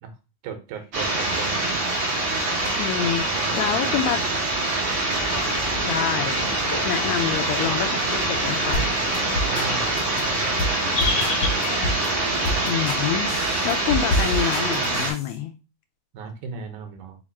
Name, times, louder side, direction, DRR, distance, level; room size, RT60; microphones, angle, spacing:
voice 1, 0.4-1.5 3.3-4.1 7.0-7.1 9.3-11.0 16.1-17.2, right 6 dB, 85° right, 2.3 m, -37 dB
sound 1, 0.9-15.1, right 2 dB, 40° right, 1.8 m, -25 dB
voice 2, 2.8-3.3 3.5-4.3 5.8-6.4 6.8-8.9 12.6-13.3 13.6-15.5, left 9 dB, 80° left, 1.7 m, -27 dB
sound 2, 5.2-12.5, left 3 dB, 50° left, 0.7 m, -33 dB
sound 3, 8.7-8.9 9.1-9.7 10.0-10.2 10.6-10.8 11.0-12.1 12.5-13.0 13.3-15.3, left 1 dB, 65° left, 2.2 m, -27 dB
5.0 x 2.4 x 4.1 m
omnidirectional pair, 3.4 m